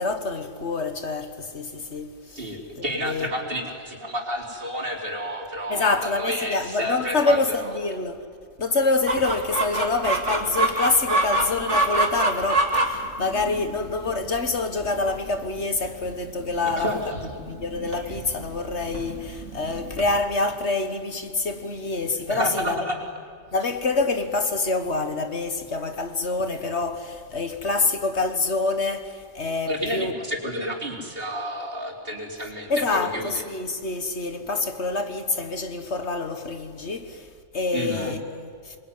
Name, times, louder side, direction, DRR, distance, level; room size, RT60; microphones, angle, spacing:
voice 1, 0.0-2.5 2.8-3.3 5.7-8.3 8.6-17.0 17.5-22.8 23.5-30.1 32.7-38.8, left 3 dB, 60° left, 1.8 m, -26 dB
voice 2, 2.4-7.7 16.6-17.2 22.3-23.0 29.6-33.4 37.7-38.1, equal, 45° right, 4.3 m, -30 dB
Chicken rooster, 9.1-20.2, right 2 dB, 65° right, 3.4 m, -27 dB
26.5 x 22.5 x 9.7 m
omnidirectional pair, 1.3 m